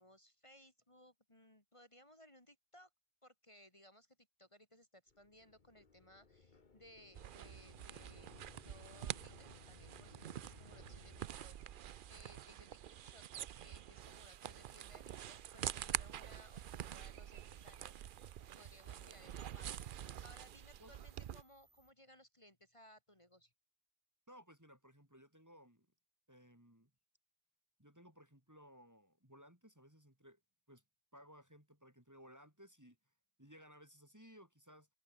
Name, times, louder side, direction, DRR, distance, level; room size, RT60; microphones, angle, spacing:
voice 1, 0.0-2.9 3.2-8.3 8.7-11.1 11.4-13.2 13.5-23.5, equal, 30° left, 3.2 m, -63 dB
sound 1, 5.1-11.3, left 4 dB, 45° left, 1.7 m, -61 dB
sound 2, 7.2-21.4, right 10 dB, 60° right, 0.7 m, -47 dB
sound 3, 14.0-21.9, right 2 dB, 85° right, 4.4 m, -72 dB
voice 2, 24.3-25.9 26.3-26.9 27.8-30.4 30.7-30.8 31.1-33.0 33.4-34.9, equal, 15° right, 3.6 m, -60 dB
omnidirectional pair, 1.1 m